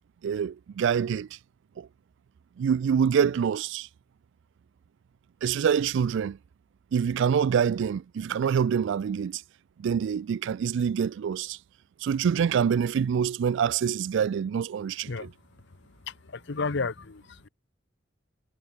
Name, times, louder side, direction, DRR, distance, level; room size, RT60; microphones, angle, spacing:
voice 1, 0.2-1.3 1.8-1.9 2.6-3.9 5.4-6.4 6.9-9.4 9.8-11.6 12.0-15.3, right 7 dB, 65° right, 0.3 m, -26 dB
voice 2, 16.1-17.5, left 4 dB, 60° left, 0.9 m, -32 dB
head